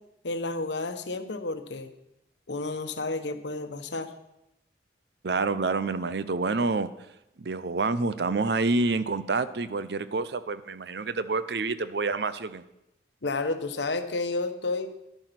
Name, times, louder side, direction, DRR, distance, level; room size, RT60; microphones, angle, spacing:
voice 1, 0.2-1.9 2.5-4.1 13.2-14.9, left 3 dB, 75° left, 9 dB, 1.0 m, -31 dB
voice 2, 5.2-6.9 7.4-12.6, right 3 dB, 65° right, 14 dB, 0.6 m, -28 dB
11.0 x 9.0 x 5.9 m, 0.87 s
head